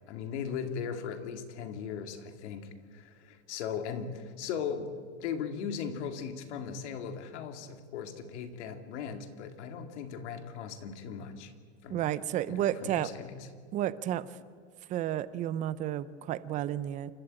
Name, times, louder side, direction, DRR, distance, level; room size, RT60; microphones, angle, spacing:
voice 1, 0.1-11.5 11.8-12.1 12.5-13.5, left 7 dB, 70° left, 8 dB, 2.3 m, -38 dB
voice 2, 11.9-13.1 13.7-14.3 14.9-17.1, right 12 dB, 20° right, 16 dB, 0.5 m, -31 dB
28.0 x 12.5 x 8.7 m, 2.1 s
supercardioid pair, 165°, 35 cm